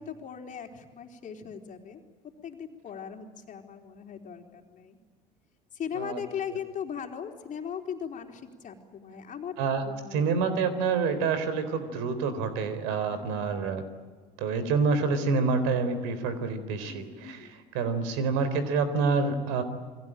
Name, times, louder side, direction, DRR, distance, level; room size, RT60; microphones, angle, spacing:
voice 1, 0.0-2.0 2.4-5.0 5.7-9.5 9.8-10.3 13.1-13.5 16.9-17.7, left 7 dB, 40° left, 4 dB, 3.9 m, -39 dB
voice 2, 10.1-13.8 14.4-19.6, right 4 dB, 65° right, 12 dB, 3.9 m, -27 dB
29.5 x 22.0 x 8.9 m, 1.5 s
hypercardioid pair, 70°, 21 cm